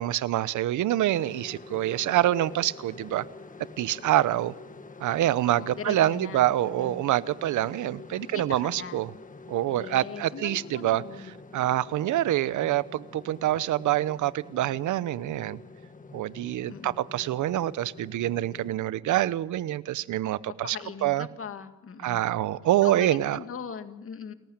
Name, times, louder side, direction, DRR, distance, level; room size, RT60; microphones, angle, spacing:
voice 1, 0.0-3.2 3.8-4.5 5.0-9.1 9.5-11.0 11.5-15.6 16.1-20.8 21.0-21.3 22.0-23.4, right 13 dB, 75° right, 17 dB, 0.9 m, -26 dB
sound 1, 1.1-18.7, left 3 dB, 25° left, 1.6 m, -47 dB
voice 2, 5.5-7.1 8.2-9.0 9.8-11.3 16.7-17.0 20.6-22.3 22.8-24.3, left 6 dB, 45° left, 8 dB, 2.1 m, -40 dB
29.5 x 15.0 x 8.8 m, 1.1 s
cardioid pair, 90°, 30 cm